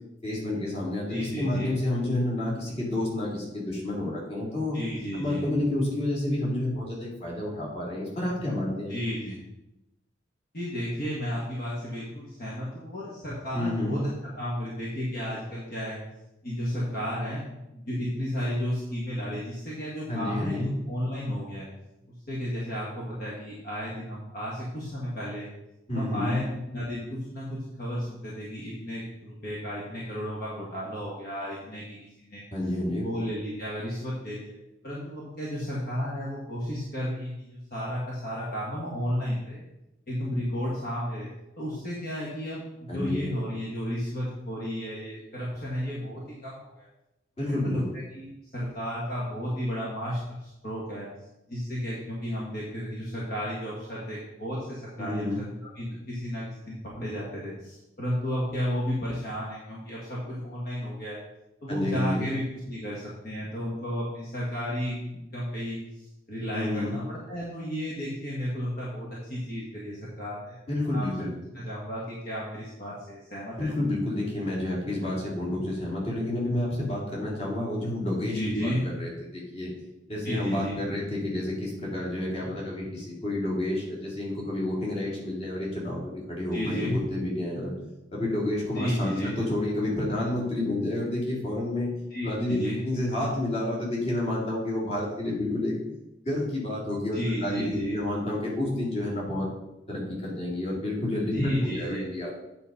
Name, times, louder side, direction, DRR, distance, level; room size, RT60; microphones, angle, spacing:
voice 1, 0.2-4.8 5.1-8.9 13.5-14.0 20.1-20.7 25.9-26.4 32.5-33.1 42.9-43.2 47.4-47.8 55.0-55.4 61.7-62.3 66.5-67.0 70.7-71.3 73.6-79.7 80.1-87.7 88.1-91.9 92.2-92.6 92.8-95.7 96.2-99.5 99.9-102.3, left 1 dB, 35° left, -5 dB, 2.8 m, -29 dB
voice 2, 1.1-1.7 4.7-5.5 8.9-9.4 10.5-16.0 16.4-17.4 17.7-21.6 22.1-25.5 25.9-32.5 33.0-34.5 34.8-39.6 40.1-41.3 41.6-46.9 47.5-51.1 51.5-55.4 55.7-61.2 61.6-65.8 66.3-70.6 70.9-71.3 71.5-73.7 78.2-78.8 80.2-80.7 86.5-87.0 88.7-89.4 92.1-92.8 97.1-98.0 101.3-102.1, equal, 50° left, -6 dB, 1.7 m, -33 dB
8.9 x 4.1 x 5.4 m, 0.93 s
head